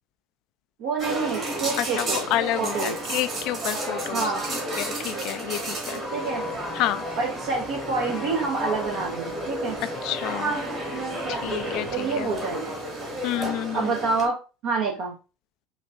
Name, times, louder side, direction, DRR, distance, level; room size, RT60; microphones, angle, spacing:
voice 1, 0.8-2.3 2.6-2.9 4.1-4.4 6.1-6.4 7.2-9.8 11.9-12.6 13.7-14.4 14.6-15.1, right 4 dB, 60° right, 0.8 m, -27 dB
sound 1, 1.0-14.3, right 1 dB, 40° right, 1.6 m, -32 dB
voice 2, 2.3-4.2 4.8-6.0 6.8-7.0 10.0-10.7 11.3-12.3 13.2-13.9, left 13 dB, 55° left, 0.3 m, -29 dB
sound 2, 6.0-12.7 13.0-13.1, left 1 dB, 5° left, 0.8 m, -38 dB
5.1 x 2.5 x 2.6 m
hypercardioid pair, 70°, 0 cm